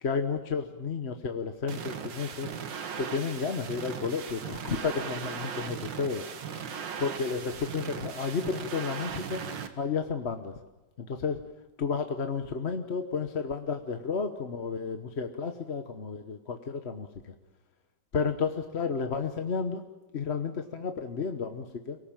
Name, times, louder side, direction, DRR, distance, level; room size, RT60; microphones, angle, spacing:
voice 1, 0.0-2.5 2.9-6.2 7.0-9.4 9.8-10.5 11.0-11.4 11.8-17.3 18.1-19.8 20.1-22.0, left 5 dB, 40° left, 6 dB, 1.2 m, -32 dB
sound 1, 1.7-9.7, right 7 dB, 85° right, 2.1 m, -38 dB
24.0 x 18.0 x 9.0 m, 1.1 s
omnidirectional pair, 2.0 m